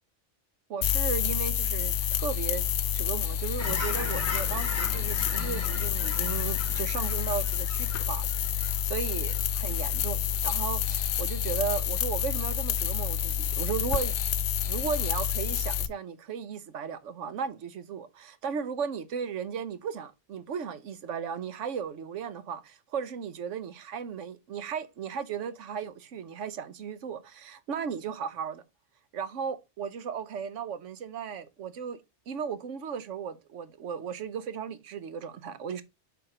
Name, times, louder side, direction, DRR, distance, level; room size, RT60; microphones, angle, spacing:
voice 1, 0.7-8.3 8.6-14.2 14.6-28.6 29.1-32.0 32.3-35.8, right 7 dB, 85° right, 1.2 m, -35 dB
sound 1, 0.8-15.9, left 9 dB, 80° left, 1.0 m, -28 dB
Fowl / Chirp tweet, 3.6-9.4 9.8-10.1, left 3 dB, 40° left, 2.1 m, -39 dB
6.9 x 3.7 x 4.8 m
omnidirectional pair, 1.2 m